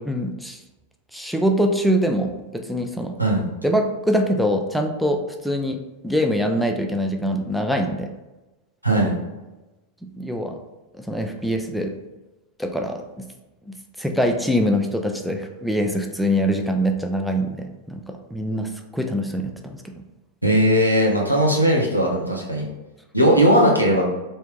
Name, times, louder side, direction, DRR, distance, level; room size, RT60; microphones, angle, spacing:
voice 1, 0.1-0.6 1.1-3.1 3.6-5.8 6.0-8.1 10.2-10.6 11.0-11.9 12.6-13.2 13.7-19.9, equal, ahead, 3 dB, 0.4 m, -24 dB
voice 2, 20.4-22.7 23.1-24.0, equal, 90° right, -2 dB, 0.8 m, -18 dB
3.4 x 2.8 x 3.6 m, 1.1 s
figure-of-eight pair, 90°, 0 cm